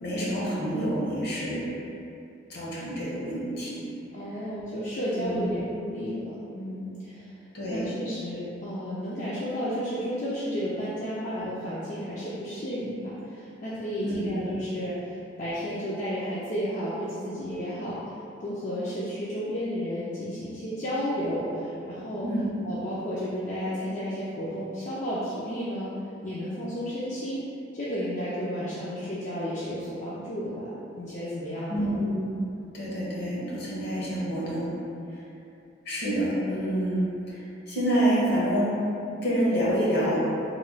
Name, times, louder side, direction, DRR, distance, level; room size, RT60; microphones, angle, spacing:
voice 1, 0.0-1.7 2.5-3.8 5.1-5.5 7.5-7.9 14.0-14.4 22.2-22.5 31.7-32.3 32.7-34.7 35.8-38.8 39.2-40.2, right 1 dB, 60° left, -7 dB, 0.9 m, -27 dB
voice 2, 4.1-7.3 7.7-18.0 18.4-22.3 22.6-25.9 26.2-27.4 27.7-31.9, equal, 40° left, -9 dB, 0.4 m, -32 dB
3.0 x 2.2 x 3.8 m, 2.7 s
head